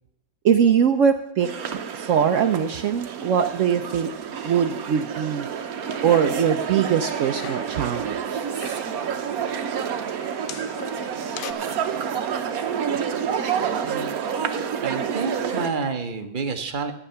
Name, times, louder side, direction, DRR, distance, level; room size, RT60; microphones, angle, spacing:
voice 1, 0.4-1.8 2.1-4.1 4.4-5.5 6.0-8.5, right 7 dB, 75° right, 6 dB, 0.7 m, -22 dB
sound 1, 1.4-15.7, right 7 dB, 55° right, 1.1 m, -29 dB
sound 2, 5.7-6.6 6.9-7.8 8.3-9.0 9.8-11.5, left 11 dB, 70° left, 1.2 m, -40 dB
voice 2, 13.8-14.2 14.8-16.9, right 4 dB, 35° right, 5 dB, 0.8 m, -29 dB
12.5 x 8.8 x 5.7 m, 0.86 s
omnidirectional pair, 2.2 m